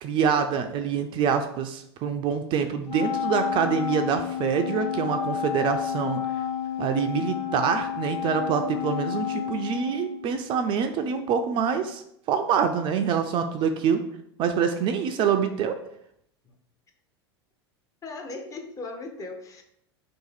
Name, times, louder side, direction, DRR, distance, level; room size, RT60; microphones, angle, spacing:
voice 1, 0.0-6.2 6.8-12.0 12.3-14.0 14.4-15.7, right 7 dB, 40° right, 7 dB, 0.3 m, -25 dB
Wind instrument woodwind instrument, 2.9-10.5, left 9 dB, 50° left, 1.0 m, -30 dB
voice 2, 18.0-19.6, left 3 dB, 25° left, 4 dB, 0.6 m, -38 dB
2.7 x 2.5 x 3.9 m, 0.73 s
hypercardioid pair, 90°, 13 cm